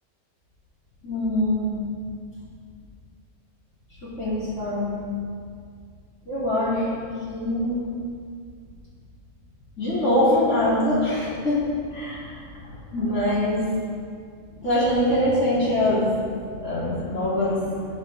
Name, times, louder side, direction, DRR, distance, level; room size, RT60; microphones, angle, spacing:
voice 1, 1.0-1.8 4.0-5.0 6.3-7.0 7.3-7.8 9.8-12.4 12.9-13.8 14.5-17.9, left 1 dB, 55° left, -8 dB, 3.7 m, -24 dB
17.0 x 7.9 x 3.7 m, 2.2 s
omnidirectional pair, 1.5 m